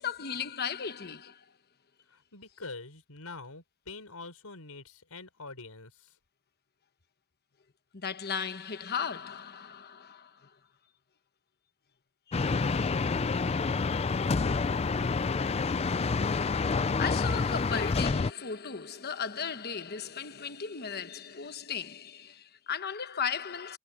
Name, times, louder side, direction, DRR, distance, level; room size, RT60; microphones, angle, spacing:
voice 1, 0.0-1.5 7.9-10.6 12.3-12.4 16.6-23.8, left 6 dB, 45° left, 1.1 m, -36 dB
voice 2, 2.1-6.2, left 3 dB, 85° left, 5.2 m, -45 dB
sound 1, 12.3-18.3, left 4 dB, 30° left, 0.4 m, -28 dB
head